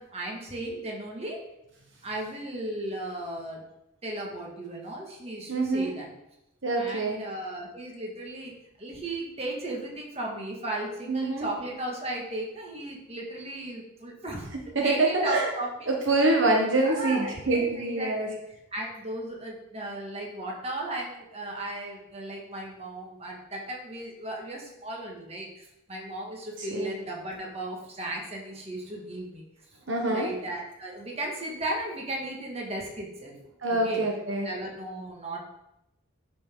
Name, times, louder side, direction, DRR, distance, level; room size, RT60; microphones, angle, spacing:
voice 1, 0.0-1.4 2.0-3.6 4.0-6.1 6.8-8.5 8.8-15.9 16.8-18.4 18.7-29.4 30.0-33.3 33.7-34.0 34.4-35.4, right 1 dB, 30° right, -1 dB, 1.8 m, -36 dB
voice 2, 5.5-5.9 6.6-7.2 11.1-11.5 14.7-15.5 15.9-18.3 26.7-26.9 29.9-30.3 33.6-34.5, right 2 dB, 65° right, 0 dB, 1.3 m, -25 dB
11.0 x 5.7 x 3.8 m, 0.87 s
head